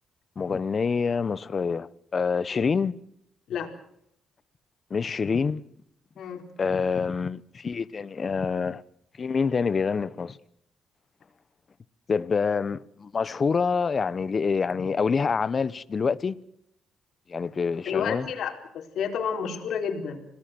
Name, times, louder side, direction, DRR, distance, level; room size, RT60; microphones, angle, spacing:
voice 1, 0.4-3.0 4.9-5.6 6.6-8.8 9.2-10.4 12.1-16.4 17.3-18.3, left 5 dB, 40° left, 1.0 m, -26 dB
voice 2, 17.9-20.2, left 7 dB, 70° left, 4.5 m, -30 dB
26.5 x 19.0 x 7.8 m
cardioid pair, 90°, 0 cm